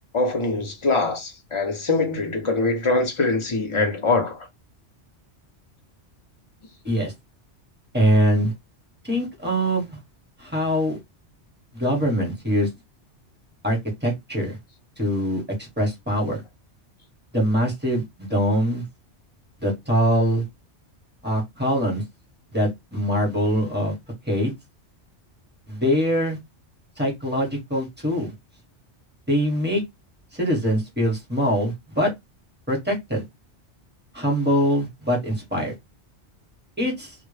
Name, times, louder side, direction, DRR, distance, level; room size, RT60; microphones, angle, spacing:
voice 1, 0.1-4.5, left 3 dB, 35° left, 0.5 m, -23 dB
voice 2, 7.9-8.5 9.0-10.0 10.4-11.0 11.7-12.7 13.6-14.6 15.0-16.4 17.3-18.8 19.6-20.4 21.2-22.0 22.5-23.9 24.3-24.5 25.7-26.4 27.0-28.3 29.3-29.8 30.3-32.1 32.7-33.2 34.1-35.7 36.8-37.1, equal, 10° right, 0.8 m, -23 dB
2.1 x 2.0 x 3.1 m
omnidirectional pair, 1.2 m